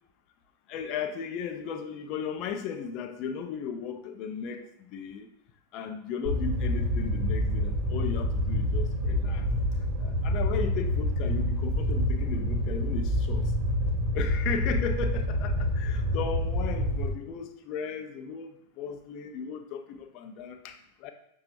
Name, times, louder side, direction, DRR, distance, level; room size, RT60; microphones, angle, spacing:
voice 1, 0.7-5.3 5.7-9.5 10.0-13.5 14.1-21.1, left 6 dB, 40° left, 7 dB, 0.4 m, -36 dB
Fire, 6.2-17.1, left 1 dB, 35° right, 1.0 m, -27 dB
5.7 x 2.3 x 3.0 m, 0.73 s
figure-of-eight pair, 90°, 0 cm